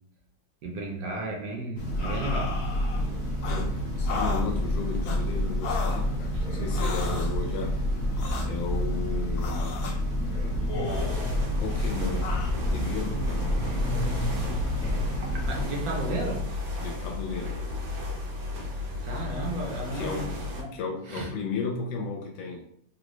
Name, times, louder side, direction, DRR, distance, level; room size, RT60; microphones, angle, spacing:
voice 1, 0.6-2.6 6.3-6.4 15.2-16.4 19.0-20.7 21.1-21.3, right 1 dB, 65° right, 0 dB, 1.0 m, -33 dB
Train, 1.8-15.6, equal, 45° left, 0.7 m, -28 dB
sound 1, 2.0-3.1 3.4-3.6 4.1-4.5 5.0-5.2 5.6-6.0 6.7-7.3 8.2-8.5 9.4-10.0 10.7-11.4 12.2-12.5, left 4 dB, 70° left, 1.0 m, -35 dB
voice 2, 3.4-7.8 8.5-9.9 11.6-13.6 16.8-17.6 19.9-20.3 20.7-22.7, left 5 dB, 85° left, 0 dB, 1.3 m, -34 dB
sound 2, 10.8-20.6, left 3 dB, 85° right, 1.6 m, -34 dB
3.7 x 2.0 x 3.0 m, 0.66 s
omnidirectional pair, 2.0 m